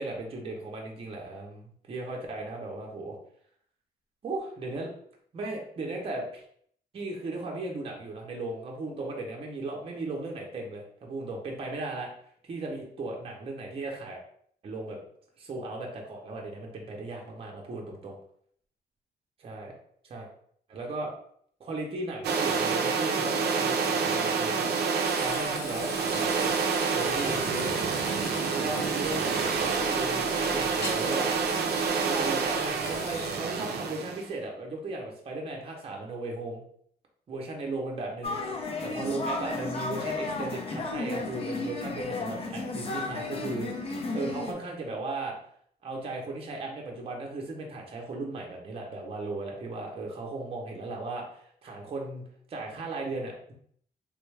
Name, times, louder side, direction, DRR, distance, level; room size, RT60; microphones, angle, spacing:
voice 1, 0.0-3.2 4.2-4.9 5.3-6.4 6.9-12.1 12.4-14.2 14.6-15.0 15.4-18.2 19.4-19.7 20.0-20.3 20.7-21.1 21.6-26.6 26.9-27.7 28.5-31.5 32.1-36.6 37.3-38.4 38.8-45.4 45.8-52.2 52.5-53.5, right 2 dB, 35° right, -1 dB, 0.6 m, -36 dB
sound 1, 22.2-34.3, right 5 dB, 80° right, 0.4 m, -28 dB
Frying (food), 25.0-33.4, left 2 dB, 75° left, 0.7 m, -42 dB
sound 2, 38.2-44.5, left 2 dB, 35° left, 0.4 m, -33 dB
3.4 x 2.2 x 3.1 m, 0.64 s
wide cardioid pair, 175°, 17 cm